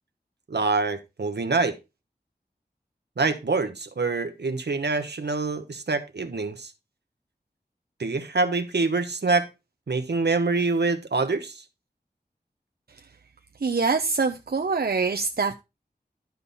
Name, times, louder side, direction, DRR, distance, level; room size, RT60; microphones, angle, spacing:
voice 1, 0.5-1.8 3.2-6.7 8.0-9.5 9.9-11.6, right 3 dB, 80° right, 1.1 m, -25 dB
voice 2, 13.6-15.5, right 4 dB, 65° right, 0.7 m, -24 dB
12.0 x 5.4 x 4.1 m
wide cardioid pair, 60°, 17 cm